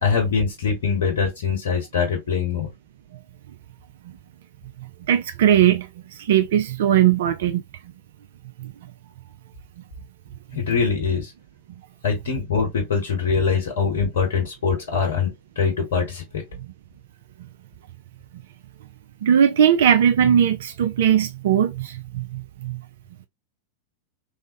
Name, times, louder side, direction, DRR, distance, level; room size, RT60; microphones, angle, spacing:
voice 1, 0.0-2.7 10.5-11.3 12.0-16.4, left 5 dB, 60° left, 1.0 m, -23 dB
voice 2, 5.1-7.6 8.6-8.7 19.2-22.8, right 9 dB, 55° right, 0.3 m, -19 dB
3.3 x 2.0 x 2.8 m
figure-of-eight pair, 90°, 0 cm